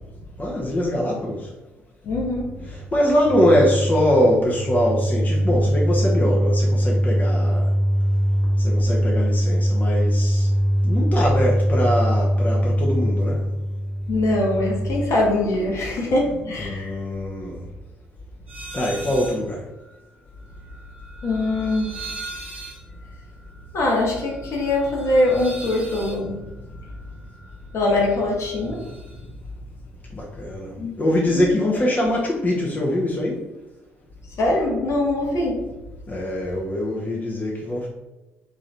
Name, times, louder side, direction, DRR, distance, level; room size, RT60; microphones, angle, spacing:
voice 1, 0.4-1.5 2.7-7.7 8.6-10.5 10.8-13.4 16.4-17.6 18.7-19.6 30.1-33.4 36.1-37.9, left 1 dB, 25° left, -3 dB, 0.8 m, -23 dB
voice 2, 2.0-2.6 14.1-16.9 21.2-22.0 23.7-26.5 27.7-28.9 30.8-30.9 31.2-31.8 34.4-35.6, left 2 dB, 50° left, -2 dB, 1.1 m, -23 dB
sound 1, 3.2-15.1, equal, 35° right, 0.5 m, -21 dB
sound 2, 18.5-19.4 19.7-27.9 28.2-29.2, right 2 dB, 90° right, 0.5 m, -40 dB
3.6 x 2.7 x 3.3 m, 1.0 s
figure-of-eight pair, 45°, 6 cm